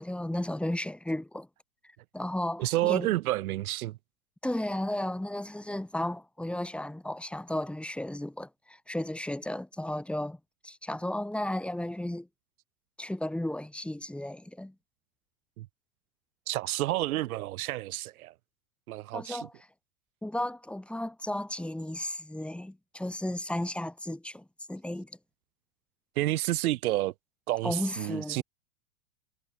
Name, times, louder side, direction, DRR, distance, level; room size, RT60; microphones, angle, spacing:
voice 1, 0.0-1.5 2.1-3.1 4.4-12.3 13.0-14.7 19.1-19.5 20.2-25.1 27.6-28.4, left 1 dB, ahead, 2.9 m, -34 dB
voice 2, 2.6-4.0 15.6-15.7 16.5-18.3 18.9-19.5 26.2-27.1 27.5-28.4, right 16 dB, 70° right, 1.5 m, -30 dB
supercardioid pair, 150°, 44 cm